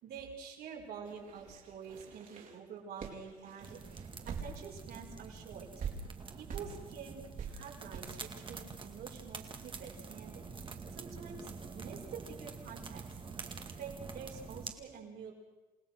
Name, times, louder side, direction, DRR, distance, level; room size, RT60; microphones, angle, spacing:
voice 1, 0.0-5.7 6.4-13.0 13.8-15.3, right 6 dB, 70° right, -1 dB, 5.7 m, -48 dB
sound 1, 1.1-4.9 5.2-5.3 5.8-5.9 6.5-6.7 7.4-7.5 7.9-8.0, right 7 dB, 50° right, 4.0 m, -44 dB
sound 2, 3.6-14.7, right 4 dB, 30° right, 2.1 m, -47 dB
29.0 x 17.5 x 6.3 m, 1.2 s
cardioid pair, 110°, 17 cm